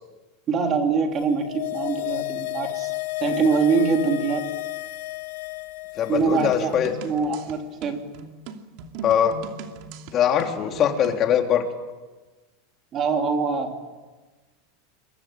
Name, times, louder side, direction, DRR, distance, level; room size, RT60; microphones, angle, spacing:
voice 1, 0.5-2.9 3.2-4.5 6.1-6.7 7.0-8.0 12.9-13.8, right 5 dB, 25° right, 4 dB, 3.5 m, -23 dB
sound 1, 1.2-6.7 7.0-7.1, left 21 dB, 80° left, 1.8 m, -32 dB
voice 2, 6.0-6.9 9.0-9.4 10.1-11.7, left 9 dB, 30° left, 3 dB, 3.4 m, -21 dB
sound 2, 6.2-11.3, right 5 dB, 50° right, 2.7 m, -39 dB
28.0 x 23.5 x 9.0 m, 1.2 s
supercardioid pair, 155°, 0 cm